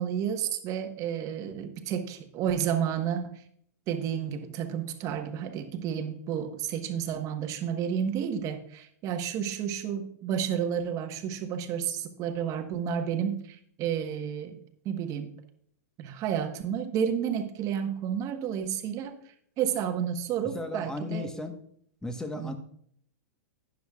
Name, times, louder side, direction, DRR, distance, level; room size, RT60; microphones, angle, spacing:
voice 1, 0.0-3.3 3.9-14.6 14.8-15.3 16.0-19.2 19.6-21.3 22.4-22.5, right 8 dB, 40° right, 7 dB, 1.3 m, -31 dB
voice 2, 20.5-21.6 22.0-22.5, left 2 dB, 5° left, 7 dB, 1.2 m, -35 dB
12.0 x 10.0 x 2.4 m, 0.64 s
hypercardioid pair, 125°, 9 cm